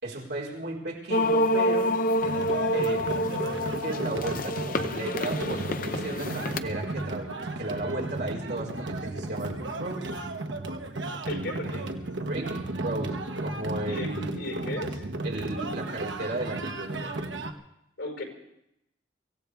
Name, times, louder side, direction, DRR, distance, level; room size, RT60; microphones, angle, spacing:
voice 1, 0.0-2.0 2.7-10.1 11.7-11.8 12.1-14.3 15.2-17.3, right 2 dB, 65° right, -3 dB, 4.6 m, -35 dB
sound 1, 1.1-6.6, left 1 dB, 50° left, 0.7 m, -27 dB
sound 2, 2.2-17.5, right 2 dB, 85° right, 1.2 m, -34 dB
voice 2, 11.3-11.9 13.9-15.1 18.0-18.2, left 2 dB, 90° left, 3 dB, 4.9 m, -36 dB
24.5 x 16.0 x 3.5 m, 0.82 s
head